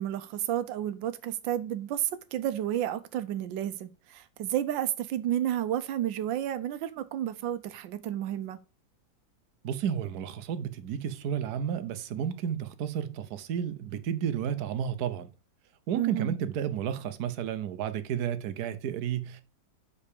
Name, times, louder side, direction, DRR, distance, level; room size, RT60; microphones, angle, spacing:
voice 1, 0.0-8.6 15.9-16.3, right 11 dB, 90° right, 1.4 m, -31 dB
voice 2, 9.6-15.3 15.9-19.4, right 9 dB, 60° right, 1.2 m, -32 dB
5.6 x 5.2 x 6.7 m
omnidirectional pair, 2.0 m